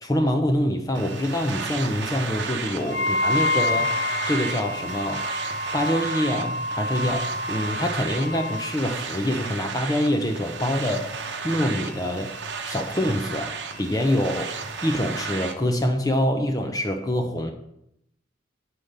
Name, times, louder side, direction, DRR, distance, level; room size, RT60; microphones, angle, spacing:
voice 1, 0.0-4.0 4.3-5.2 5.7-11.2 11.4-12.3 12.7-14.5 14.8-17.5, left 1 dB, 20° left, 5 dB, 0.6 m, -25 dB
sound 1, 0.9-15.5, right 4 dB, 60° right, 0.9 m, -33 dB
Wind instrument woodwind instrument, 2.9-8.7, left 2 dB, 75° left, 0.8 m, -28 dB
8.0 x 5.7 x 5.1 m, 0.80 s
head